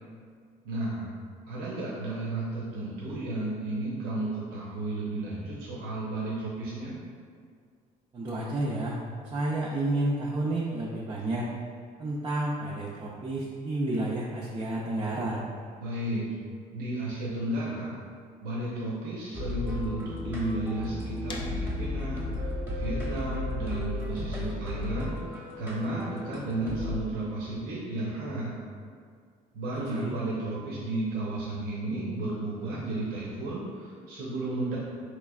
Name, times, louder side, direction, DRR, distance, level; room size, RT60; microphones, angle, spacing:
voice 1, 0.6-1.1 1.5-7.0 15.8-16.3 16.7-18.0 18.4-28.5 29.5-34.8, right 2 dB, 90° right, -6 dB, 0.7 m, -33 dB
voice 2, 8.1-9.0 9.2-11.5 12.0-15.4 29.7-30.1, right 2 dB, 30° right, -4 dB, 0.4 m, -30 dB
sound 1, 19.3-27.0, left 2 dB, 15° right, 0.8 m, -34 dB
sound 2, 21.3-27.1, left 3 dB, 30° left, 0.4 m, -49 dB
4.3 x 3.1 x 2.3 m, 2.1 s
cardioid pair, 125°, 16 cm